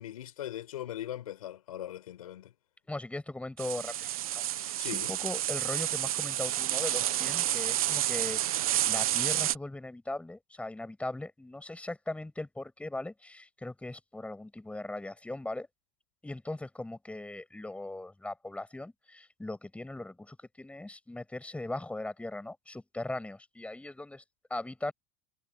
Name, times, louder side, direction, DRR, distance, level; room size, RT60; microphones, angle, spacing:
voice 1, 0.0-2.5 4.8-5.1, left 12 dB, 90° left, 5.8 m, -40 dB
voice 2, 2.9-15.7 16.2-24.2 24.5-24.9, left 2 dB, 5° left, 7.2 m, -39 dB
sound 1, 3.6-9.6, right 13 dB, 90° right, 0.9 m, -30 dB
hypercardioid pair, 105°, 18 cm